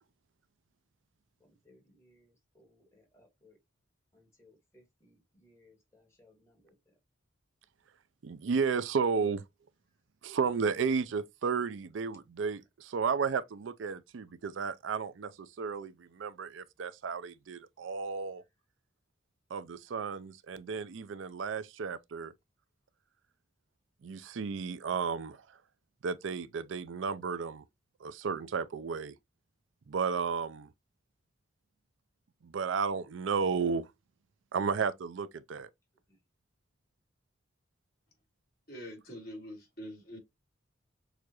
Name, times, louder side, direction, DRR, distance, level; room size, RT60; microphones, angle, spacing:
voice 1, 1.4-3.6 4.1-6.9 9.9-10.0 18.4-18.5 36.1-36.2, left 1 dB, 15° left, 1.6 m, -65 dB
voice 2, 8.2-9.4 10.2-18.4 19.5-22.3 24.0-25.4 26.0-27.6 28.0-29.1 29.9-30.7 32.4-33.9 34.5-35.7, right 5 dB, 80° right, 0.4 m, -33 dB
voice 3, 38.7-40.2, equal, 50° left, 2.9 m, -44 dB
6.4 x 2.4 x 2.9 m
head